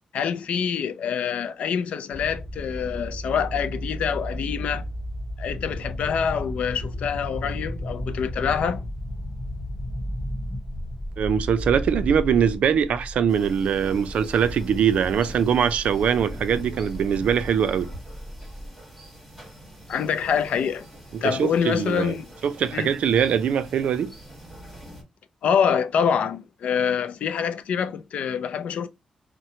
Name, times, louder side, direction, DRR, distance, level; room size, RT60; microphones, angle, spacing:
voice 1, 0.1-4.9 5.4-8.8 19.9-20.9 21.2-22.2 22.7-22.9 25.4-28.9, left 7 dB, 80° left, 0.3 m, -25 dB
sound 1, 2.1-18.7, equal, 25° left, 0.9 m, -34 dB
voice 2, 11.2-17.9 21.1-22.2 22.4-24.1, right 8 dB, 80° right, 0.3 m, -22 dB
sound 2, 13.3-25.0, right 1 dB, ahead, 1.3 m, -44 dB
2.9 x 2.1 x 2.6 m
wide cardioid pair, 135°, 2 cm